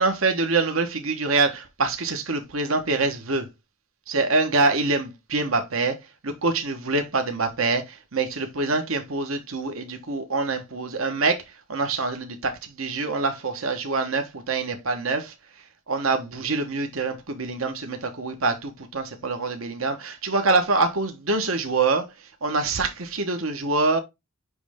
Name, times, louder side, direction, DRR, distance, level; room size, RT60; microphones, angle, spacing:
voice 1, 0.0-3.5 4.1-11.4 11.7-15.3 15.9-24.0, right 3 dB, 70° right, 1.3 m, -25 dB
9.4 x 3.3 x 3.6 m
head